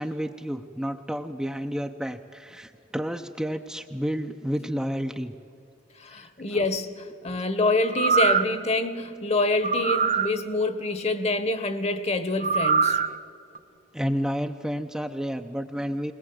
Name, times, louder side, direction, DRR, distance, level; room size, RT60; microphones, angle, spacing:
voice 1, 0.0-5.3 6.1-6.6 13.9-16.1, equal, 5° right, 0.6 m, -31 dB
voice 2, 6.0-13.0, left 2 dB, 35° left, 1.2 m, -26 dB
sound 1, 7.8-8.6 9.6-10.3 12.4-13.1 13.6-13.7, right 5 dB, 45° right, 0.7 m, -23 dB
21.5 x 21.0 x 7.9 m
head